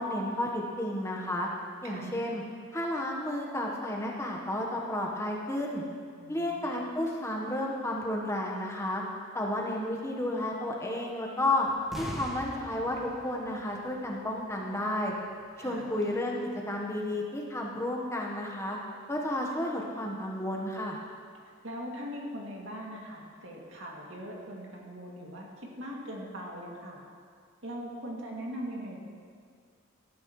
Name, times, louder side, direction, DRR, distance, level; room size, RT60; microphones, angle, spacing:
voice 1, 0.0-1.5 1.8-2.4 2.7-5.8 6.3-9.0 9.3-11.7 12.0-15.1 15.6-16.4 16.7-18.8 19.1-21.0, left 1 dB, 15° left, -1 dB, 1.2 m, -32 dB
voice 2, 1.8-2.2 6.2-6.7 15.6-15.9 21.6-27.0 27.6-29.0, equal, 65° right, -2 dB, 2.5 m, -40 dB
sound 1, 11.7-14.3 14.6-14.7 15.2-15.3 15.7-16.3, equal, ahead, 1.4 m, -42 dB
18.0 x 13.0 x 3.2 m, 2.1 s
head